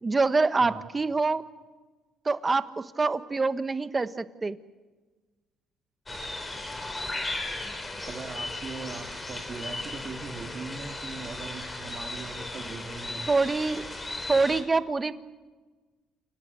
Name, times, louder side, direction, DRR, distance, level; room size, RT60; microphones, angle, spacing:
voice 1, 0.0-1.4 2.2-4.6 13.3-13.8 14.3-15.1, right 3 dB, 25° right, 12 dB, 1.3 m, -25 dB
sound 1, 6.1-14.6, left 2 dB, 20° left, 4.8 m, -36 dB
voice 2, 8.1-13.3, right 4 dB, 45° right, 4 dB, 2.5 m, -40 dB
29.5 x 18.5 x 9.2 m, 1.3 s
cardioid pair, 85°, 0 cm